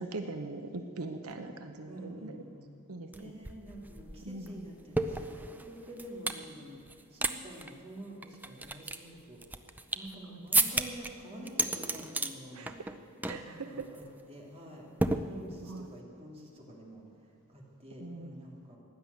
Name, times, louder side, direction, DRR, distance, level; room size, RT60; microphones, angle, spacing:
voice 1, 0.0-2.4 2.9-3.3 4.2-4.7 10.3-10.4 12.5-13.0 13.2-13.9 15.7-15.9 18.0-18.4, right 3 dB, 80° right, 7 dB, 0.9 m, -41 dB
voice 2, 1.9-2.7 3.1-9.6 9.9-12.8 13.4-18.8, right 1 dB, 25° right, -1 dB, 2.4 m, -48 dB
sound 1, 3.1-3.2 3.4-6.4 6.9-7.3 7.6-7.7 8.2-10.1 10.5-11.1 11.5-12.3 12.7-13.0 13.2-13.5 13.8-14.0 15.0-15.8, right 2 dB, 10° right, 0.5 m, -32 dB
15.5 x 10.5 x 8.0 m, 2.5 s
head